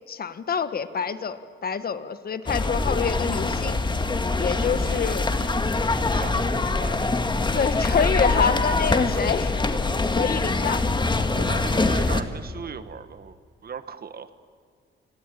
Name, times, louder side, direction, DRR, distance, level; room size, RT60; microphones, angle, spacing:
voice 1, 0.1-3.8 4.4-5.4 7.5-9.6 10.1-10.8, left 6 dB, 50° left, 12 dB, 1.4 m, -27 dB
sound 1, 2.5-12.2, left 3 dB, 25° left, 1.8 m, -24 dB
voice 2, 4.6-5.1 6.1-7.0 11.3-13.4 13.6-14.3, right 6 dB, 50° right, 12 dB, 1.4 m, -37 dB
28.5 x 22.5 x 9.2 m, 2.2 s
cardioid pair, 110°, 20 cm